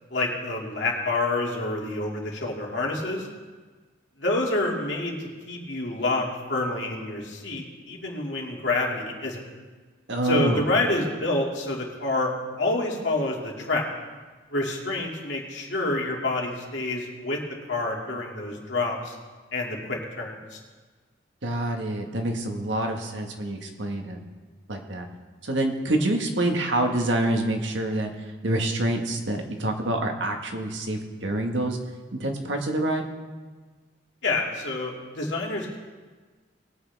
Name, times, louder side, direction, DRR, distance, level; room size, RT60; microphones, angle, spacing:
voice 1, 0.1-3.3 4.2-9.4 10.2-12.3 12.6-13.9 14.5-17.4 17.7-19.1 19.5-20.6 34.2-35.8, left 2 dB, 70° left, -2 dB, 2.5 m, -28 dB
voice 2, 10.1-10.6 21.4-24.2 24.7-25.1 25.4-28.1 28.4-31.8 32.1-33.0, right 1 dB, 80° right, 3 dB, 1.6 m, -26 dB
20.5 x 8.7 x 3.5 m, 1.4 s
head